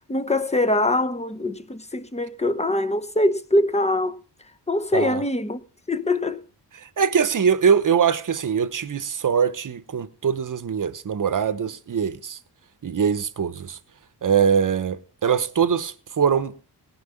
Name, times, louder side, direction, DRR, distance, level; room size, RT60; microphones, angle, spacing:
voice 1, 0.1-4.2 4.7-5.6 5.9-6.4, left 1 dB, 15° left, 1.0 m, -23 dB
voice 2, 6.8-12.4 12.8-13.8 14.2-16.5, right 7 dB, 45° right, 1.1 m, -22 dB
18.0 x 6.1 x 5.8 m
cardioid pair, 70°, 42 cm